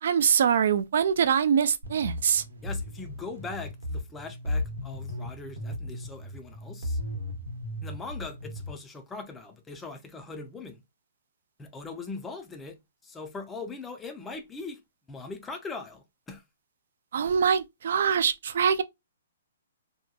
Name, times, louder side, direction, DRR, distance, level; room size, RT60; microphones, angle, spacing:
voice 1, 0.0-2.4 17.1-18.8, right 7 dB, 60° right, 0.3 m, -24 dB
sound 1, 1.8-8.7, left 1 dB, 90° right, 0.9 m, -35 dB
voice 2, 2.6-7.0 7.8-10.8 11.6-12.8 13.0-14.8 15.1-16.4, left 3 dB, 10° left, 0.4 m, -40 dB
2.7 x 2.2 x 2.3 m
hypercardioid pair, 160°, 0 cm